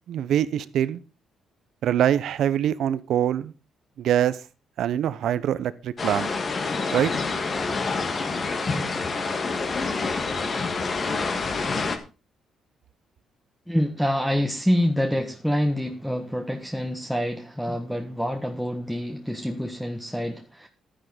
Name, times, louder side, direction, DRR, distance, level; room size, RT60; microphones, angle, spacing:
voice 1, 0.1-1.0 1.8-3.5 4.0-4.4 4.8-6.3 6.9-7.1, right 10 dB, 75° right, 0.9 m, -24 dB
sound 1, 6.0-12.0, left 4 dB, 40° left, 2.4 m, -27 dB
voice 2, 13.7-20.7, equal, ahead, 1.5 m, -26 dB
12.0 x 10.0 x 5.1 m
cardioid pair, 90°, 0 cm